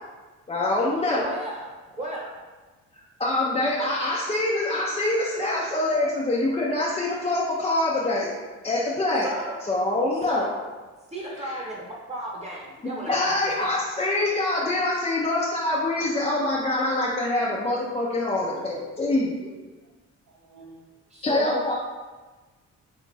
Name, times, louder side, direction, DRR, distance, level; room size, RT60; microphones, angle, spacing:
voice 1, 0.5-1.3 3.2-8.3 8.6-9.2 9.7-10.5 11.5-11.6 13.1-19.5 21.2-21.8, left 2 dB, 20° left, -5 dB, 0.5 m, -25 dB
voice 2, 1.1-1.7 2.0-2.3 9.2-9.5 10.3-10.5 11.1-11.8 12.1-13.7 18.7-18.8 21.1-21.6, right 1 dB, 20° right, -4 dB, 1.0 m, -34 dB
voice 3, 5.4-6.1 20.3-20.8 21.7-21.8, right 5 dB, 80° right, -2 dB, 0.7 m, -45 dB
2.9 x 2.4 x 3.9 m, 1.3 s
cardioid pair, 90°, 30 cm